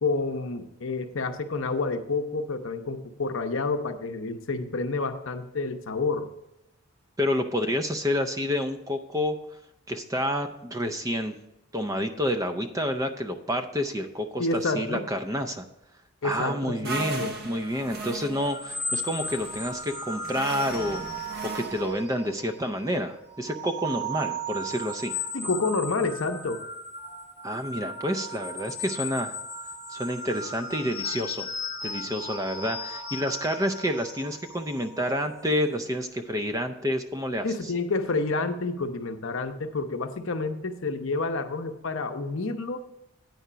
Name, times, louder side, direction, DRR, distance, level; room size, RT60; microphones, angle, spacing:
voice 1, 0.0-6.3 14.4-15.0 16.2-17.4 25.3-26.6 37.4-42.8, left 3 dB, 60° left, 7 dB, 0.7 m, -29 dB
voice 2, 7.2-9.4 9.9-11.3 11.7-15.7 16.2-21.0 21.5-25.1 27.4-29.4 29.9-31.5 31.8-37.7, equal, 15° right, 7 dB, 0.4 m, -29 dB
sound 1, 16.8-22.0, right 2 dB, 45° right, 0.9 m, -37 dB
sound 2, 17.5-22.7 23.2-35.5, equal, 25° left, 1.2 m, -36 dB
9.3 x 5.0 x 5.6 m, 0.87 s
head